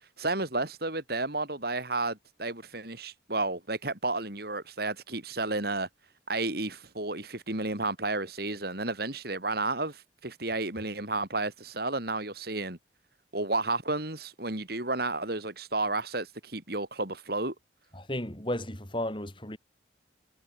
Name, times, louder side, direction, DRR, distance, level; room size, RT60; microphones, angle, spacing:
voice 1, 0.2-5.9 6.3-12.8 13.3-17.5, right 2 dB, 55° right, 3.6 m, -32 dB
voice 2, 17.9-19.6, left 1 dB, 25° left, 4.1 m, -34 dB
head